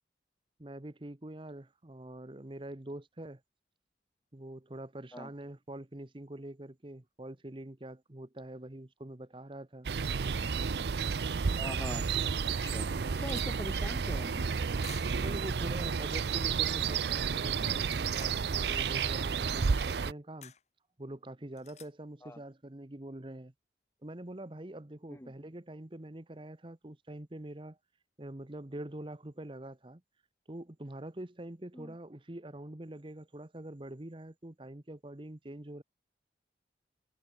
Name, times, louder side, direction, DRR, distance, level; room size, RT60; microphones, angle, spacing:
voice 1, 0.6-3.4 4.3-9.9 13.0-13.3 15.2-20.5 21.0-23.5 24.0-27.8 28.2-30.0 30.5-35.8, right 1 dB, 30° right, 1.0 m, -45 dB
sound 1, 9.8-20.1, right 6 dB, 65° right, 0.5 m, -31 dB
voice 2, 11.6-12.1 12.6-12.9 13.2-14.5 22.2-22.4 25.1-25.3 31.7-31.9, left 1 dB, 15° left, 2.4 m, -42 dB
sound 2, 12.5-12.6 12.7-13.5 14.8-15.3 17.6-18.4 20.4-20.6 21.6-21.9, left 9 dB, 40° left, 6.7 m, -52 dB
head